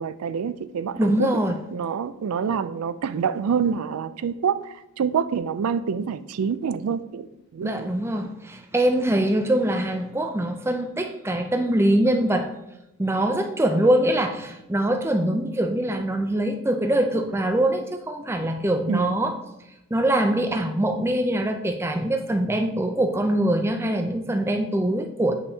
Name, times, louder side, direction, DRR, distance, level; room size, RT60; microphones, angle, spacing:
voice 1, 0.0-1.3 1.7-7.3 7.5-7.9 18.9-19.1, right 6 dB, 80° right, 13 dB, 0.4 m, -26 dB
voice 2, 1.0-1.6 7.6-12.5 13.0-19.4 19.9-25.3, right 1 dB, 10° right, 5 dB, 0.4 m, -23 dB
8.4 x 5.5 x 2.7 m, 0.88 s
head